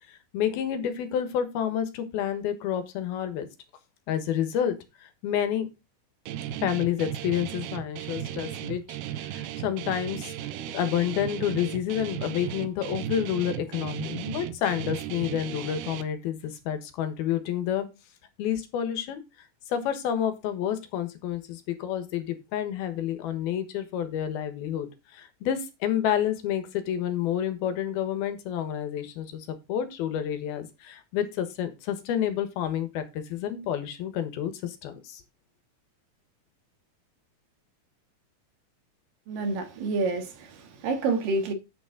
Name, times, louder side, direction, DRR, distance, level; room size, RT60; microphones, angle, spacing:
voice 1, 0.3-3.5 4.1-4.7 5.0-5.7 6.6-17.9 18.4-19.2 19.7-24.9 25.1-35.2, left 9 dB, 80° left, 3.2 m, -29 dB
Guitar, 6.3-16.0, right 11 dB, 90° right, 2.8 m, -36 dB
voice 2, 39.3-41.5, right 3 dB, 65° right, 3.0 m, -28 dB
9.3 x 7.0 x 3.8 m
omnidirectional pair, 4.4 m